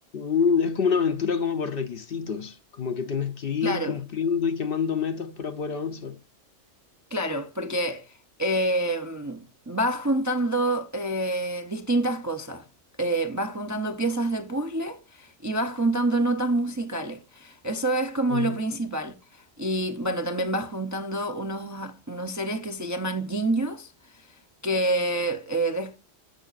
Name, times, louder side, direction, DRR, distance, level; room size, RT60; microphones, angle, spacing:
voice 1, 0.1-6.2 18.3-18.6, left 6 dB, 55° left, 0.8 m, -27 dB
voice 2, 3.6-4.0 7.1-12.7 13.0-24.2 24.6-26.0, right 1 dB, 20° right, 0.4 m, -27 dB
15.5 x 5.5 x 2.4 m
omnidirectional pair, 1.3 m